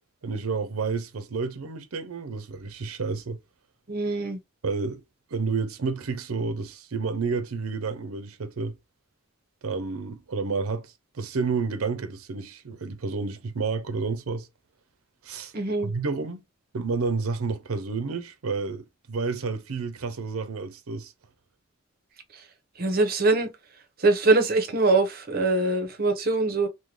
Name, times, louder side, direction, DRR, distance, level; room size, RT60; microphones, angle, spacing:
voice 1, 0.2-3.4 4.6-5.0 5.3-8.8 9.6-14.5 15.2-15.5 15.8-16.4 16.7-21.1, right 4 dB, 80° right, 0.6 m, -30 dB
voice 2, 3.9-4.4 15.5-15.9 22.8-23.5 24.0-26.7, right 3 dB, 45° right, 0.8 m, -23 dB
3.6 x 2.2 x 3.0 m
head